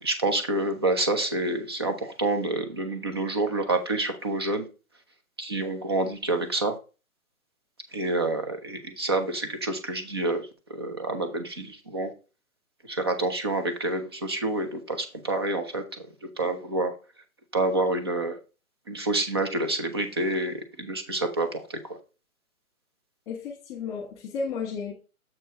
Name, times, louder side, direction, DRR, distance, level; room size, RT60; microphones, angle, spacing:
voice 1, 0.0-4.7 5.4-6.8 7.9-12.1 12.9-16.1 16.4-17.0 17.5-18.4 18.9-22.0, right 2 dB, 20° right, 7 dB, 0.5 m, -28 dB
voice 2, 23.2-24.9, left 5 dB, 20° left, 0 dB, 1.6 m, -33 dB
7.4 x 4.5 x 4.9 m, 0.32 s
hypercardioid pair, 150°, 43 cm